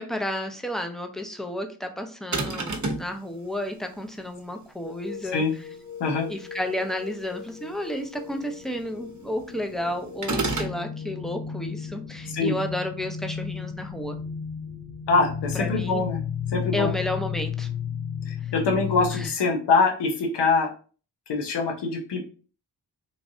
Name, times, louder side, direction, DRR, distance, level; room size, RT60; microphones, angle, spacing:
voice 1, 0.0-5.4 6.3-14.2 15.5-16.0 16.7-17.7 19.1-19.3, left 1 dB, ahead, 5 dB, 0.7 m, -32 dB
sound 1, 2.3-3.1 10.2-10.8, right 2 dB, 45° right, 0.9 m, -27 dB
sound 2, 4.8-19.3, left 7 dB, 45° left, 1.0 m, -34 dB
voice 2, 15.1-16.2 16.5-16.9 18.3-20.7 21.3-22.2, left 4 dB, 80° left, 2 dB, 0.8 m, -24 dB
3.2 x 2.5 x 2.6 m, 0.38 s
supercardioid pair, 40°, 41 cm